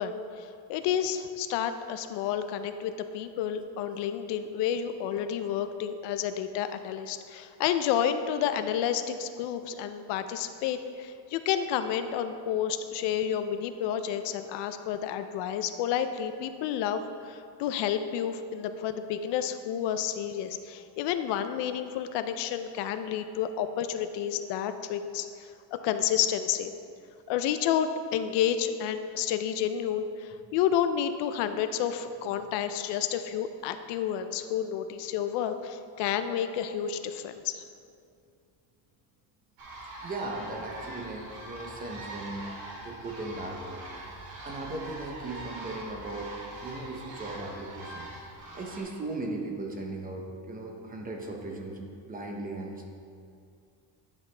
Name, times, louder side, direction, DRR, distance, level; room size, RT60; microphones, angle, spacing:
voice 1, 0.0-26.7 27.3-37.6, left 9 dB, 65° left, 9 dB, 0.5 m, -30 dB
sound 1, 39.6-48.8, right 2 dB, 85° right, 2.0 m, -42 dB
voice 2, 40.0-42.5 42.8-43.8 44.4-46.3 46.6-48.1 48.5-52.9, right 2 dB, 20° right, 1 dB, 0.6 m, -37 dB
10.5 x 6.0 x 3.3 m, 2.4 s
cardioid pair, 165°, 46 cm